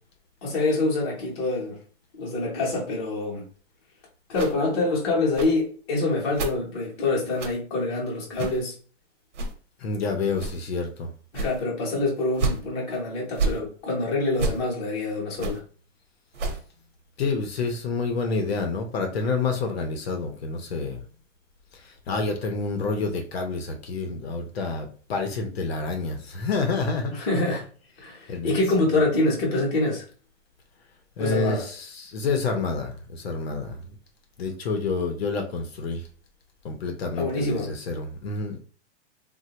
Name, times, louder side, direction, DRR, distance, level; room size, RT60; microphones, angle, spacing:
voice 1, 0.4-1.8 2.2-3.5 4.3-8.7 11.3-15.6 27.1-27.7 28.0-30.0 31.2-31.7 37.2-37.7, left 2 dB, 20° left, 0.8 m, -26 dB
sound 1, 4.3-4.5 5.3-5.5 6.3-6.5 7.3-7.5 8.3-8.6 9.3-9.5 10.3-10.6 11.3-11.6 12.3-12.6 13.3-13.6 14.3-14.6 15.3-15.6 16.3-16.6, right 3 dB, 75° right, 0.9 m, -28 dB
voice 2, 9.8-11.1 17.2-21.0 21.7-27.1 28.3-28.9 31.2-33.8 34.4-36.1 36.6-38.6, left 4 dB, 60° left, 0.7 m, -28 dB
3.2 x 2.2 x 2.8 m
hypercardioid pair, 170°, 36 cm